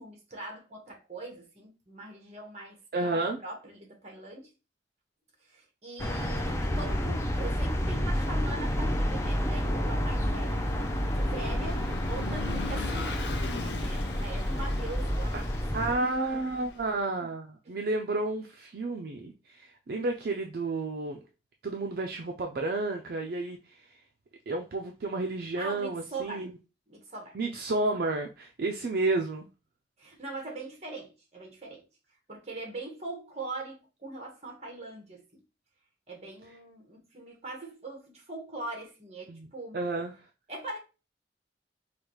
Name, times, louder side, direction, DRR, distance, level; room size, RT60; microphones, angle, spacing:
voice 1, 0.0-2.8 3.4-4.5 5.4-15.3 15.7-16.0 17.6-17.7 25.5-26.5 26.9-27.4 30.0-31.8 32.3-35.4 36.1-39.8 40.5-40.8, right 2 dB, 40° right, 1.4 m, -42 dB
voice 2, 2.9-3.4 15.3-15.4 15.7-21.2 21.6-24.0 24.5-26.6 27.3-29.5 39.3-39.5 39.7-40.1, right 2 dB, 60° right, 0.4 m, -31 dB
sound 1, 6.0-15.9, equal, 15° left, 0.4 m, -30 dB
Vehicle / Engine, 7.1-16.9, left 4 dB, 75° left, 0.6 m, -41 dB
4.8 x 2.3 x 3.0 m
head